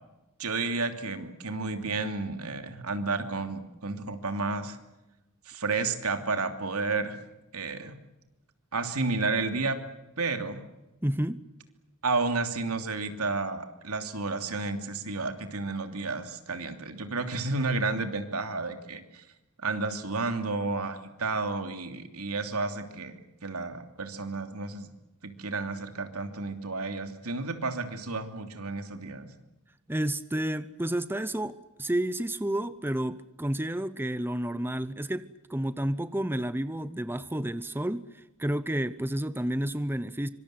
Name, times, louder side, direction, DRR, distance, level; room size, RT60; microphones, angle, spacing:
voice 1, 0.4-4.8 5.4-7.2 7.5-7.9 8.7-9.8 10.2-10.6 12.0-19.2 19.6-24.9 25.2-29.3, right 3 dB, 85° right, 7 dB, 3.0 m, -31 dB
voice 2, 11.0-11.4 29.9-35.2 35.5-38.0 38.4-40.3, right 1 dB, 10° right, 14 dB, 0.8 m, -30 dB
25.5 x 25.0 x 7.9 m, 0.99 s
head